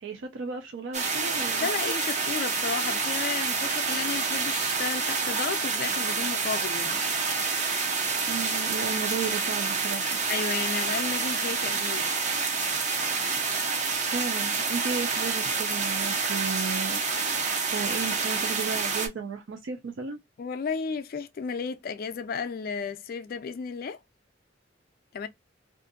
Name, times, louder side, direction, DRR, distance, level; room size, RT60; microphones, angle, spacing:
voice 1, 0.0-1.7 8.3-10.2 14.0-17.0 17.7-20.2, right 5 dB, 80° right, 0.5 m, -34 dB
sound 1, 0.9-19.1, right 4 dB, 40° right, 0.6 m, -28 dB
voice 2, 1.6-7.0 10.3-12.1 20.4-24.0 25.1-25.3, left 5 dB, 50° left, 0.4 m, -33 dB
2.6 x 2.4 x 2.5 m
head